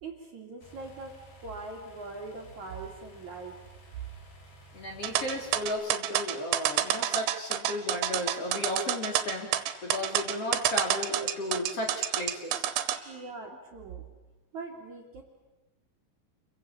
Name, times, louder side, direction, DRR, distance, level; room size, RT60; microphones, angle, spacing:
voice 1, 0.0-3.6 13.0-14.1 14.5-15.2, right 3 dB, 45° right, 1 dB, 3.4 m, -42 dB
sound 1, 0.6-5.7, right 1 dB, 75° left, 6.7 m, -54 dB
voice 2, 4.7-9.5 9.8-12.7 12.9-13.3, left 1 dB, 35° left, 1 dB, 3.7 m, -34 dB
sound 2, 5.0-13.0, right 12 dB, 90° right, 3.6 m, -29 dB
28.0 x 22.5 x 8.7 m, 1.1 s
omnidirectional pair, 5.2 m